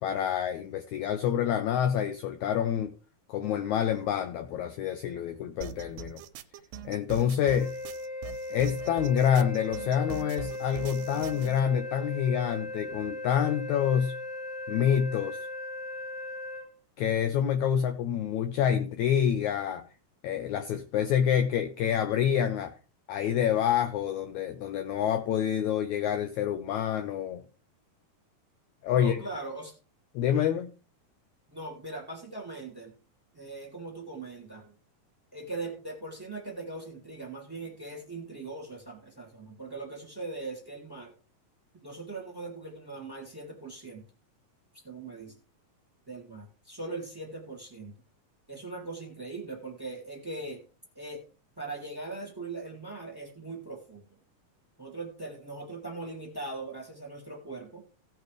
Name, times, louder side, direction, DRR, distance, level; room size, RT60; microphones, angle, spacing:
voice 1, 0.0-2.9 3.3-6.2 6.9-7.8 8.5-14.1 14.7-15.4 17.0-19.8 20.2-22.7 23.1-27.4 28.8-29.2 30.2-30.7, left 9 dB, 75° left, 8 dB, 1.8 m, -27 dB
sound 1, 5.6-11.6, right 8 dB, 85° right, 2.4 m, -42 dB
Wind instrument woodwind instrument, 7.5-16.7, left 2 dB, 55° left, 2.6 m, -38 dB
voice 2, 28.9-29.7 31.5-32.9 33.3-34.7 35.3-41.1 41.8-44.0 44.8-45.3 46.1-47.9 48.5-50.6 50.9-51.2 51.6-54.0 54.8-57.8, right 3 dB, 10° right, 1 dB, 2.0 m, -40 dB
17.0 x 6.6 x 3.3 m, 0.36 s
omnidirectional pair, 4.0 m